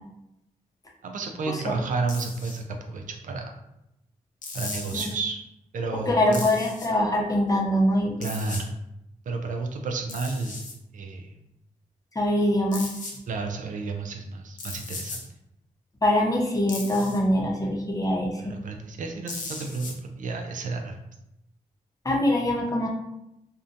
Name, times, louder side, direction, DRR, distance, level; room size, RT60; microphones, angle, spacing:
voice 1, 1.0-3.5 4.5-5.4 5.7-6.4 8.2-8.7 9.3-10.6 10.9-11.4 13.3-15.2 18.4-21.0, right 3 dB, 65° right, 4 dB, 0.4 m, -31 dB
sound 1, 2.1-2.6 4.4-5.1 6.3-6.9 8.2-8.6 10.1-10.7 12.7-13.2 14.6-15.3 16.7-17.2 19.3-19.9, left 3 dB, 65° left, 0.6 m, -37 dB
voice 2, 6.1-8.3 12.1-12.8 16.0-18.5 22.0-22.9, left 1 dB, 25° left, -1 dB, 0.7 m, -23 dB
2.6 x 2.2 x 2.5 m, 0.84 s
cardioid pair, 65°, 14 cm